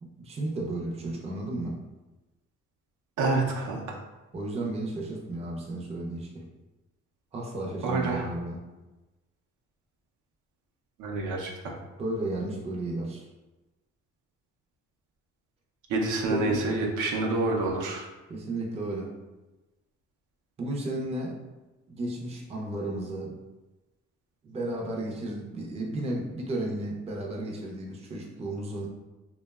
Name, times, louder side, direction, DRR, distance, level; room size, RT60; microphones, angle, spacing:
voice 1, 0.0-1.8 4.3-6.5 7.3-8.6 12.0-13.2 16.3-16.8 18.3-19.1 20.6-21.4 21.9-23.4 24.4-28.9, right 2 dB, 20° right, -1 dB, 0.4 m, -33 dB
voice 2, 3.2-4.0 7.8-8.2 11.0-11.7 15.9-18.1, right 2 dB, 80° right, 0 dB, 0.5 m, -28 dB
2.7 x 2.1 x 2.2 m, 1.1 s
cardioid pair, 90°, 30 cm